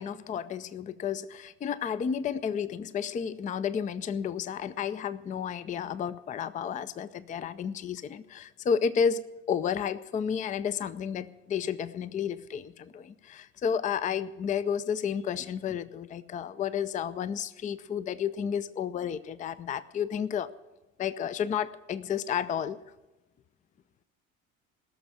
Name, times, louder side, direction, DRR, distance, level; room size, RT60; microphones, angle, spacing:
voice 1, 0.0-20.5 21.0-22.8, left 7 dB, 20° left, 15 dB, 0.5 m, -31 dB
17.5 x 6.9 x 9.2 m, 1.1 s
figure-of-eight pair, 60°, 41 cm